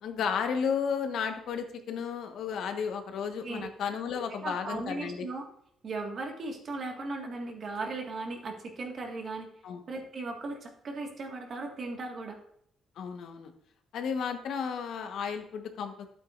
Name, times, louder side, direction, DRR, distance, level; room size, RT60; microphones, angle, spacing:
voice 1, 0.0-5.3 9.6-9.8 13.0-13.5 13.9-16.1, left 6 dB, 70° left, 6 dB, 1.2 m, -33 dB
voice 2, 4.4-5.5 5.8-9.5 9.9-12.4, right 3 dB, 45° right, 2 dB, 1.7 m, -37 dB
11.5 x 8.4 x 2.5 m, 0.70 s
cardioid pair, 135°, 0 cm